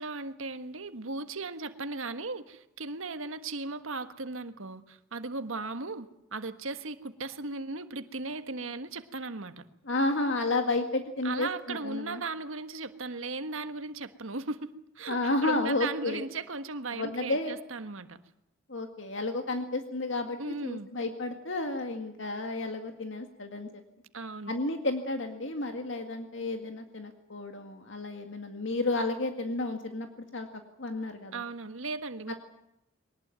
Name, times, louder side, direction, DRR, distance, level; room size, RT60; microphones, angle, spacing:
voice 1, 0.0-9.6 11.2-18.2 20.4-20.9 24.1-24.5 31.3-32.3, right 3 dB, 80° right, 10 dB, 1.5 m, -37 dB
voice 2, 9.9-12.2 15.1-16.2 16.9-17.6 18.7-23.8 24.5-30.1 30.3-30.5 30.8-31.4 32.3-32.4, left 2 dB, 65° left, 6 dB, 2.0 m, -32 dB
22.5 x 19.5 x 9.1 m, 0.84 s
head